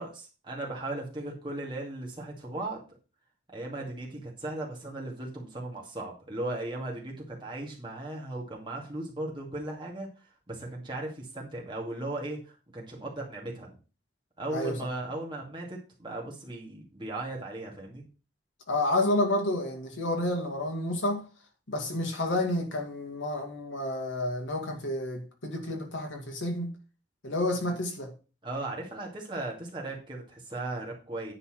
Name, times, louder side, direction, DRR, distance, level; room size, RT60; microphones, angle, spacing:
voice 1, 0.0-2.8 3.5-10.1 10.5-13.8 14.4-18.1 28.4-31.3, right 2 dB, 25° right, 2.3 m, -37 dB
voice 2, 18.7-21.2 21.7-26.7 27.2-28.1, left 1 dB, 80° left, 2.3 m, -30 dB
9.9 x 4.2 x 6.5 m
head